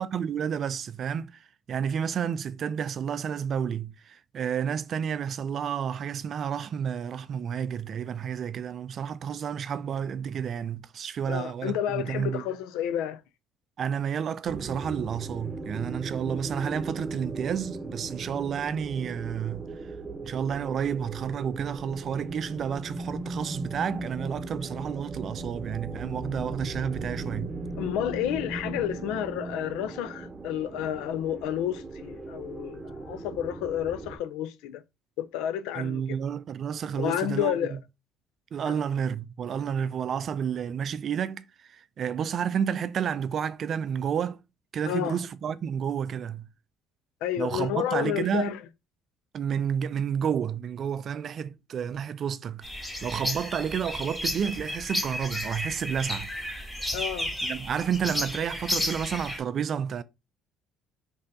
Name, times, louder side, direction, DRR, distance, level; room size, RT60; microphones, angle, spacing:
voice 1, 0.0-12.5 13.8-19.7 20.2-27.6 35.7-37.8 38.5-44.4 44.7-46.5 47.4-48.6 49.3-52.7 53.0-56.3 57.4-60.0, right 8 dB, 55° right, 0.3 m, -30 dB
voice 2, 11.3-13.2 27.8-34.8 35.2-36.2 36.9-37.8 38.7-38.8 44.9-45.2 47.2-48.6 56.9-57.3, left 10 dB, 80° left, 0.4 m, -30 dB
sound 1, 14.4-34.2, right 2 dB, 25° right, 0.8 m, -38 dB
sound 2, 52.6-59.4, left 1 dB, 5° left, 2.0 m, -32 dB
3.1 x 2.7 x 4.0 m
supercardioid pair, 75°, 0 cm